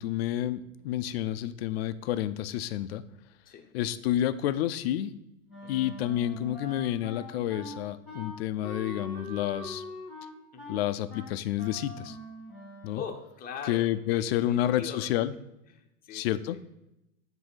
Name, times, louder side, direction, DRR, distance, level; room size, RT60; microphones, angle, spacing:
voice 1, 0.0-3.0 3.7-5.1 5.7-9.8 10.7-12.2 12.8-13.0 13.7-15.3 16.1-16.6, left 12 dB, 45° left, 13 dB, 0.4 m, -29 dB
Wind instrument woodwind instrument, 5.5-13.1, left 1 dB, ahead, 2.5 m, -43 dB
voice 2, 5.6-5.9 10.5-10.8 12.9-15.2 15.7-16.6, left 7 dB, 20° left, 4 dB, 0.8 m, -42 dB
7.6 x 2.8 x 5.5 m, 0.86 s
hypercardioid pair, 105°, 43 cm